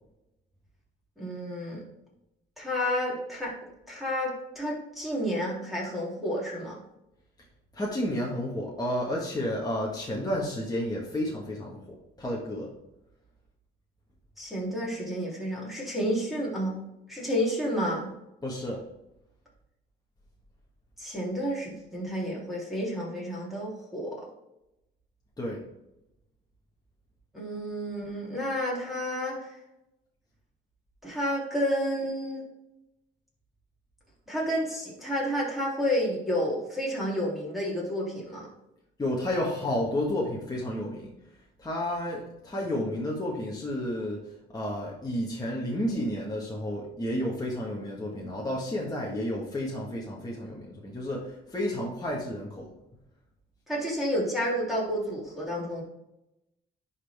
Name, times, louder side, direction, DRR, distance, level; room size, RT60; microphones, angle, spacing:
voice 1, 1.2-1.8 2.6-3.5 3.9-6.8 14.4-16.8 17.1-18.1 21.0-24.2 27.3-29.5 31.0-32.4 34.3-38.5 53.7-55.8, equal, ahead, -6 dB, 3.1 m, -30 dB
voice 2, 7.7-12.7 18.4-18.8 25.4-25.6 39.0-41.1 41.6-44.2 44.5-52.7, left 1 dB, 20° left, -3 dB, 1.7 m, -31 dB
11.0 x 4.3 x 3.6 m, 0.87 s
cardioid pair, 90°, 20 cm